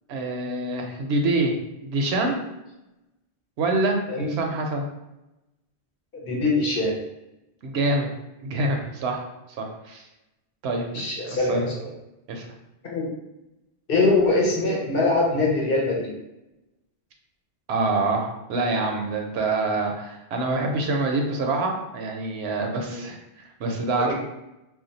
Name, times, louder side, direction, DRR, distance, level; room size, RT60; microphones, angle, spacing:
voice 1, 0.1-1.6 1.8-2.4 3.6-4.0 4.3-4.8 7.6-8.1 8.4-9.2 9.6-10.0 10.6-11.7 12.3-12.5 17.7-23.2 23.6-24.1, right 2 dB, 75° right, 2 dB, 0.8 m, -26 dB
voice 2, 6.1-6.9 10.8-11.9 12.9-13.1 13.9-16.1 22.9-23.0 24.0-24.1, left 2 dB, 60° left, -3 dB, 1.0 m, -23 dB
2.5 x 2.2 x 3.9 m, 0.92 s
omnidirectional pair, 1.1 m